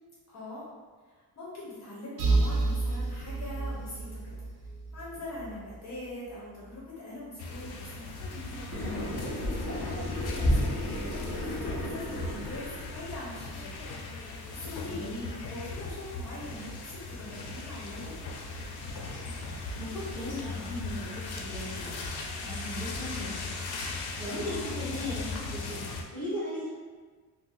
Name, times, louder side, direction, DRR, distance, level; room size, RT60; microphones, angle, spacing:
voice 1, 0.3-0.7 1.4-4.4 4.9-8.0 8.9-13.7 14.3-18.1 24.5-24.8, left 1 dB, 45° left, -6 dB, 0.7 m, -42 dB
sound 1, 2.2-5.9, right 3 dB, 70° right, 0.6 m, -30 dB
sound 2, 7.4-26.0, left 3 dB, 85° left, 0.5 m, -38 dB
voice 2, 8.7-9.2 14.9-15.3 19.2-22.0 22.4-23.6 24.2-25.8 26.1-26.7, left 1 dB, 5° left, -10 dB, 0.8 m, -38 dB
sound 3, 8.7-13.3, left 1 dB, 20° right, 1.3 m, -32 dB
2.5 x 2.0 x 3.9 m, 1.5 s
wide cardioid pair, 175°, 38 cm